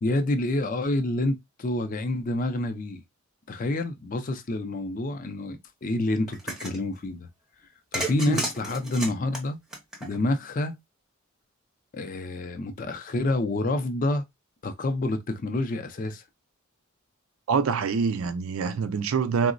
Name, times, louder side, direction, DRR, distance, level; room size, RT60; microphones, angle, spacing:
voice 1, 0.0-3.0 3.5-7.3 7.9-9.6 10.0-10.8 11.9-14.2 14.6-16.2, left 2 dB, 40° left, 0.4 m, -28 dB
sound 1, 6.3-6.8 7.9-10.4, right 1 dB, ahead, 0.6 m, -33 dB
voice 2, 17.5-19.5, right 5 dB, 70° right, 0.4 m, -25 dB
3.7 x 2.0 x 2.4 m
head